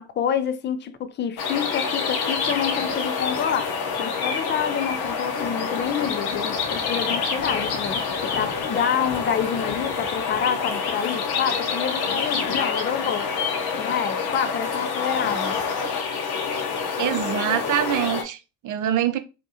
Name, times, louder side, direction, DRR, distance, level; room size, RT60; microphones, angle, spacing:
voice 1, 0.0-13.3 13.8-15.6, left 8 dB, 25° left, 0.4 m, -28 dB
sound 1, 1.4-18.2, left 5 dB, 50° left, 0.7 m, -27 dB
voice 2, 17.0-19.2, right 11 dB, 40° right, 0.5 m, -24 dB
2.7 x 2.1 x 2.8 m
hypercardioid pair, 60°, 48 cm